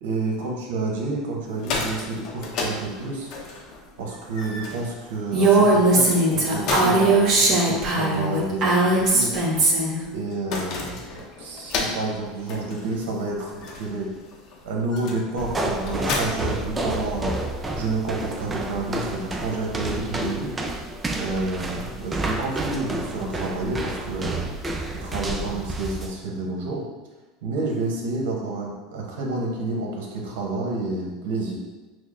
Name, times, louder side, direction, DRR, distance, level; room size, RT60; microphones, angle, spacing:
voice 1, 0.0-3.3 4.0-9.3 10.1-14.1 14.6-20.5 21.2-24.5 25.0-26.8 27.4-31.5, right 2 dB, 85° right, -1 dB, 0.8 m, -29 dB
sound 1, 1.4-17.3, left 3 dB, 55° left, 0.6 m, -35 dB
Female speech woman speaking, 5.3-10.0, right 2 dB, 45° right, 1.2 m, -19 dB
sound 2, 15.4-26.1, right 2 dB, 20° right, 0.4 m, -30 dB
6.0 x 2.1 x 2.4 m, 1.2 s
supercardioid pair, 115°, 0 cm